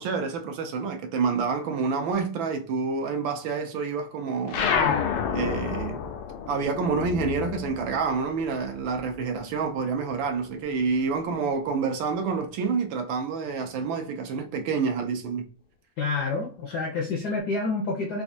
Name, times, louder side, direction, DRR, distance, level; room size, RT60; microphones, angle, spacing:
voice 1, 0.0-4.7 5.3-6.1 6.5-15.5, right 5 dB, 75° right, 1.2 m, -28 dB
sound 1, 4.5-9.4 9.7-11.1, left 7 dB, 90° left, 1.5 m, -30 dB
voice 2, 16.0-18.2, left 3 dB, 75° left, 0.9 m, -28 dB
4.2 x 2.5 x 2.5 m
omnidirectional pair, 2.4 m